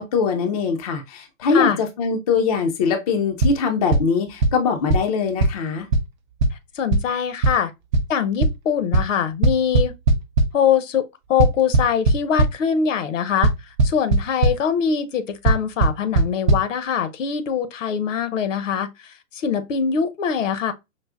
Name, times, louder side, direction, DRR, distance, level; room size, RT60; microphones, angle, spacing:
voice 1, 0.0-5.9, left 5 dB, 30° left, 0.4 m, -22 dB
sound 1, 3.4-3.5 3.9-4.0 4.4-4.5 4.9-5.0 5.4-5.5 5.9-6.0 6.4-6.5 6.9-7.0 7.4-7.5 7.9-8.0 8.4-8.5 8.9-9.0 9.4-10.4 11.4-12.5 13.4-13.5 13.8-14.2 14.4-14.5 15.5-15.6 15.8-16.2 16.5-16.6, right 3 dB, 35° right, 0.4 m, -15 dB
voice 2, 6.7-7.7 8.1-9.9 10.5-11.0 11.3-13.5 13.8-20.7, left 7 dB, 65° left, 0.7 m, -23 dB
4.9 x 2.0 x 2.3 m
hypercardioid pair, 130°, 41 cm